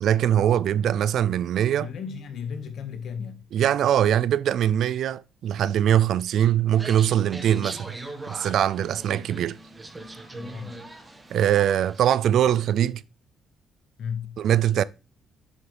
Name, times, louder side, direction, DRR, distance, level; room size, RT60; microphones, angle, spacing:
voice 1, 0.0-1.9 3.5-7.9 8.3-9.6 11.3-13.0 14.4-14.8, right 10 dB, 75° right, 0.3 m, -22 dB
voice 2, 1.8-3.5 10.3-10.9 11.4-11.5 14.0-14.5, left 7 dB, 65° left, 1.4 m, -35 dB
sound 1, 6.7-12.1, right 2 dB, 20° right, 1.4 m, -40 dB
7.2 x 6.9 x 3.3 m
cardioid pair, 90°, 0 cm